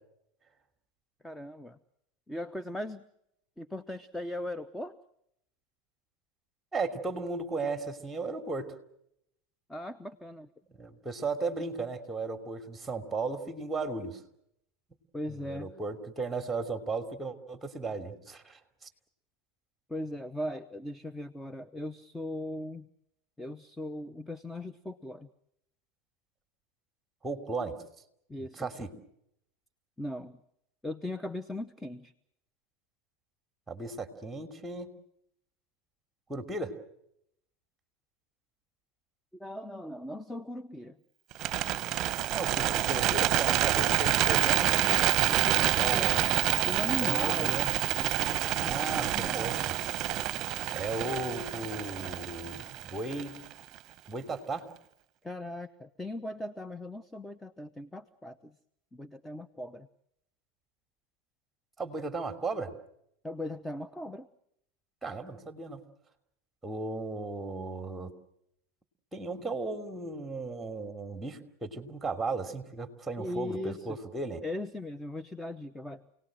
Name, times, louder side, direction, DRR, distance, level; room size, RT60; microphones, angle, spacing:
voice 1, 1.2-1.8 2.3-3.0 3.6-5.0 9.7-10.5 15.1-15.7 19.9-22.9 23.4-25.3 28.3-28.7 30.0-30.4 30.8-32.1 39.4-41.0 45.3-47.6 48.0-49.7 55.2-58.5 58.9-59.9 63.2-64.3 73.2-74.0 74.4-76.1, left 1 dB, 10° left, 14 dB, 0.9 m, -39 dB
voice 2, 6.7-8.7 10.7-14.2 15.3-18.9 27.2-27.8 28.6-28.9 33.7-34.9 36.3-36.7 42.3-44.7 45.7-46.3 47.0-47.7 48.6-49.7 50.7-53.3 54.1-54.7 61.8-62.7 65.0-65.8 66.6-68.1 69.1-74.4, right 3 dB, 10° right, 8 dB, 3.0 m, -35 dB
Bird, 41.3-53.5, right 13 dB, 45° right, 0.9 m, -28 dB
29.0 x 18.5 x 7.6 m, 0.78 s
hypercardioid pair, 100°, 0 cm